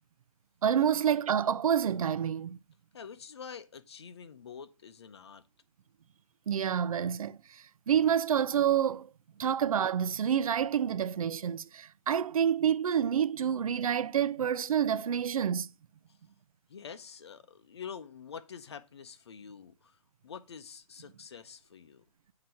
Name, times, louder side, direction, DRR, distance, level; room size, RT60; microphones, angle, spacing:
voice 1, 0.6-2.6 6.5-9.1 9.4-15.7, right 8 dB, 75° right, 0.4 m, -28 dB
voice 2, 2.9-5.4 16.1-16.2 16.7-22.0, left 7 dB, 50° left, 0.6 m, -46 dB
7.7 x 2.9 x 5.6 m
hypercardioid pair, 180°, 18 cm